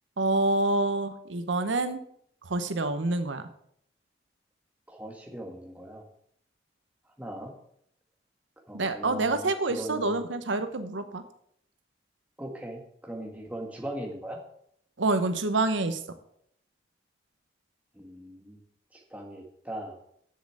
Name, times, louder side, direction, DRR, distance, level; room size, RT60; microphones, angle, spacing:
voice 1, 0.2-2.0 2.4-3.4 8.7-11.2 15.0-16.0, right 2 dB, 85° right, 10 dB, 0.9 m, -27 dB
voice 2, 4.9-6.0 7.2-7.5 8.7-10.2 12.4-14.4 17.9-18.6 18.9-20.0, right 1 dB, 10° right, 1 dB, 1.6 m, -39 dB
7.5 x 7.0 x 7.5 m, 0.68 s
head